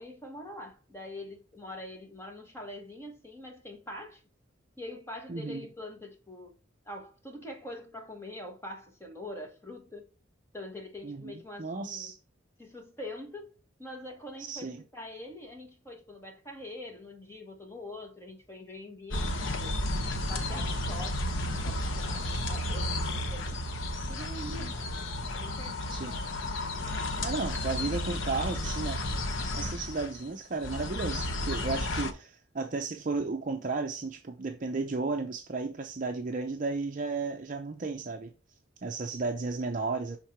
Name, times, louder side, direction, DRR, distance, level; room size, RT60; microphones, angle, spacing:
voice 1, 0.0-4.2 4.8-6.5 6.8-10.1 10.5-12.1 12.6-13.5 13.8-19.8 20.1-23.6 24.1-24.9 25.3-26.0, left 1 dB, 15° left, 1.3 m, -44 dB
voice 2, 5.3-5.7 11.0-12.2 14.5-14.8 20.5-20.6 24.5-24.7 25.9-26.2 27.2-29.0 29.6-38.3 38.8-40.2, right 3 dB, 40° right, 0.5 m, -34 dB
sound 1, 19.1-30.3 30.6-32.1, left 1 dB, 85° left, 0.9 m, -32 dB
5.9 x 3.6 x 4.4 m
head